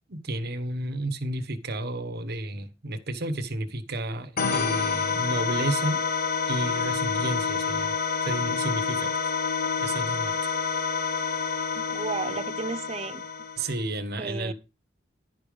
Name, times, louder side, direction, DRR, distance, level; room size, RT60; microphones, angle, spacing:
voice 1, 0.1-6.0 6.5-8.0 8.2-9.1 9.8-10.5 13.6-14.5, right 1 dB, 55° right, 1.2 m, -31 dB
sound 1, 4.4-13.8, left 5 dB, 45° left, 0.8 m, -28 dB
voice 2, 11.8-13.2 14.2-14.5, right 4 dB, 30° right, 0.5 m, -33 dB
11.0 x 5.1 x 5.1 m
head